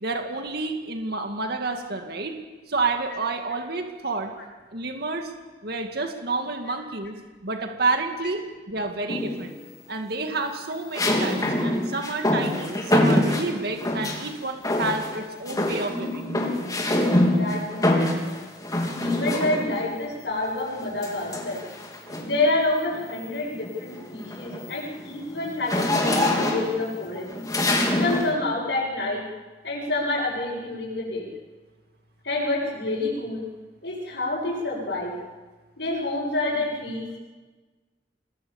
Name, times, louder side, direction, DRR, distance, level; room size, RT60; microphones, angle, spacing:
voice 1, 0.0-2.4 2.7-4.3 4.7-5.3 5.6-7.2 7.4-8.4 8.7-9.6 9.9-16.2, right 3 dB, 65° right, 4 dB, 2.2 m, -29 dB
sound 1, 9.1-9.6 10.9-14.3 14.6-15.2 15.5-19.9 21.0-22.4 22.9-23.2 23.5-28.3, left 1 dB, 20° left, 3.8 m, -25 dB
voice 2, 17.1-18.0 19.0-21.7 22.2-27.3 28.0-29.2 29.6-31.3 32.2-33.4 33.8-35.1 35.8-37.2, left 2 dB, 90° left, -7 dB, 7.0 m, -28 dB
27.0 x 20.5 x 7.2 m, 1.3 s
head